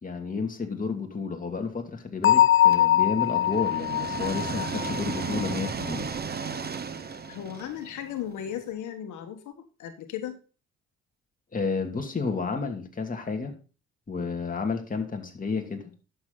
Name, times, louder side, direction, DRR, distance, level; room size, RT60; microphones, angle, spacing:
voice 1, 0.0-6.1 11.5-13.5 14.1-15.9, left 4 dB, 25° left, 3 dB, 2.5 m, -31 dB
Bell, 2.2-5.9, left 12 dB, 45° left, 0.5 m, -23 dB
sound 1, 2.7-8.6, right 6 dB, 30° right, 1.1 m, -35 dB
voice 2, 7.3-10.4, left 10 dB, 80° left, 6 dB, 1.5 m, -36 dB
11.5 x 7.2 x 3.9 m, 0.35 s
cardioid pair, 90°, 30 cm